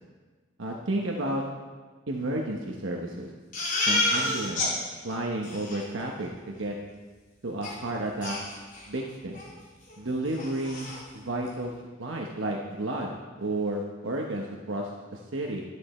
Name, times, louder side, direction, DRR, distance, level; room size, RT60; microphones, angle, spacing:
voice 1, 0.6-1.4 2.1-3.3 3.9-4.7 5.0-6.8 7.4-8.4 8.9-9.4 10.0-11.7 12.0-13.1 13.4-15.6, right 1 dB, 70° right, 0 dB, 1.1 m, -32 dB
Crying sobbing, 3.5-4.7 5.1-5.2 5.4-5.8 7.6-7.7 8.2-9.0 9.3-9.5 9.9-10.0 10.3-11.0, left 2 dB, 45° left, 3.4 m, -29 dB
12.0 x 11.0 x 4.4 m, 1.4 s
head